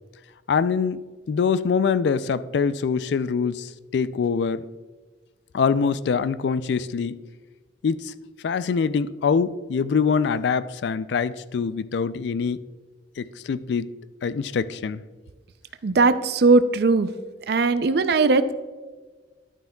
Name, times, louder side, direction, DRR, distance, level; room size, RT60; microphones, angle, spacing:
voice 1, 0.5-1.0 1.3-4.7 5.5-7.2 7.8-8.1 8.4-12.6 13.2-13.9 14.2-15.0, left 5 dB, 70° left, 15 dB, 0.3 m, -24 dB
voice 2, 15.8-17.1 17.5-18.5, right 3 dB, 60° right, 12 dB, 0.4 m, -19 dB
11.0 x 9.3 x 2.3 m, 1.4 s
head